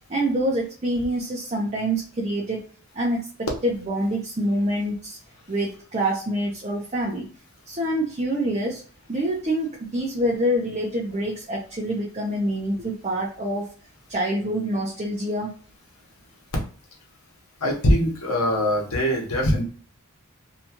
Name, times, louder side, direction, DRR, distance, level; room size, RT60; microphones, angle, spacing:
voice 1, 0.1-2.6 2.9-5.2 5.5-7.3 7.7-8.8 9.1-13.7 14.1-15.5, right 1 dB, 30° right, -2 dB, 0.5 m, -26 dB
voice 2, 17.6-19.6, equal, 85° left, 0 dB, 1.0 m, -22 dB
2.8 x 2.3 x 2.8 m, 0.43 s
head